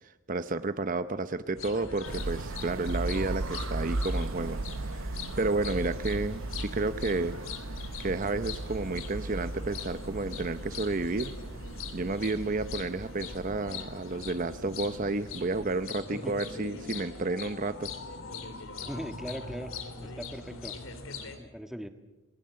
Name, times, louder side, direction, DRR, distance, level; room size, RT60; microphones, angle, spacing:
voice 1, 0.0-7.4 8.0-11.3 11.9-17.9, right 3 dB, 40° right, 11 dB, 0.8 m, -31 dB
sound 1, 1.5-21.4, left 4 dB, 80° left, 3.0 m, -42 dB
sound 2, 2.0-15.9, right 2 dB, 75° right, 0.9 m, -37 dB
voice 2, 18.9-19.7 20.0-20.8 21.4-21.9, equal, ahead, 7 dB, 1.6 m, -39 dB
28.5 x 21.0 x 7.7 m, 1.1 s
head